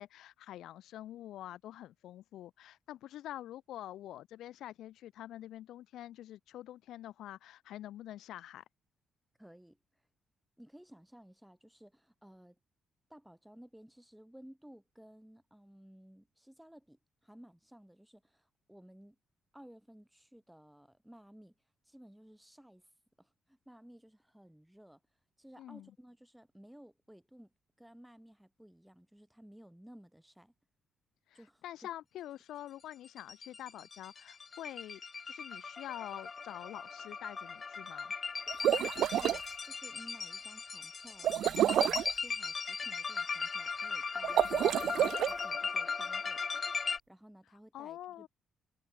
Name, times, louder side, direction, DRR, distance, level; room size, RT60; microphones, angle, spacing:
voice 1, 0.0-8.6 25.6-25.9 31.3-35.0 35.3-38.1 47.7-48.3, left 13 dB, 60° left, 0.9 m, -46 dB
voice 2, 9.4-9.8 10.6-12.6 13.1-19.2 19.5-21.5 21.9-22.9 23.2-25.0 25.4-30.5 31.3-31.9 38.6-46.4 47.1-48.3, equal, 5° right, 3.8 m, -57 dB
sound 1, 33.0-47.0, left 5 dB, 35° left, 0.6 m, -38 dB
sound 2, 38.5-39.4 41.2-42.1 44.2-45.3, right 11 dB, 60° right, 0.5 m, -29 dB
figure-of-eight pair, 40°, 0 cm